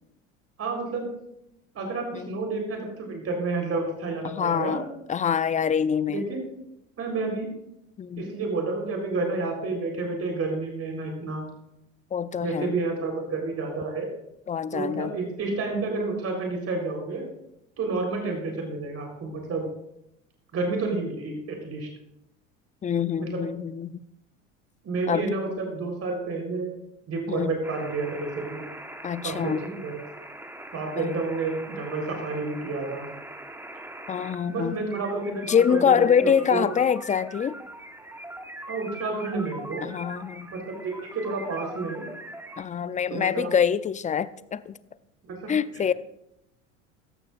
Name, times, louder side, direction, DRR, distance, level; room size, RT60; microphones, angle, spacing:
voice 1, 0.6-1.1 1.7-4.8 6.1-6.4 7.0-7.5 8.2-11.5 12.4-14.1 14.7-17.3 17.8-19.7 20.5-21.9 23.2-23.4 24.8-26.7 27.1-28.6 29.2-30.0 30.7-33.1 34.5-36.7 38.7-39.9 40.5-42.0 43.1-43.5 45.3-45.5, right 3 dB, 40° right, 1 dB, 4.1 m, -30 dB
voice 2, 4.2-4.8 5.1-6.3 8.0-8.3 12.1-12.7 14.5-15.1 22.8-24.0 25.1-25.3 27.3-27.5 29.0-29.6 31.0-31.1 34.1-34.8 35.5-37.6 39.8-40.5 42.6-44.8 45.5-45.9, left 7 dB, 20° left, 16 dB, 0.5 m, -25 dB
sound 1, 27.6-42.6, right 1 dB, 5° right, 1.3 m, -42 dB
16.0 x 13.5 x 2.6 m, 0.83 s
hypercardioid pair, 75°, 38 cm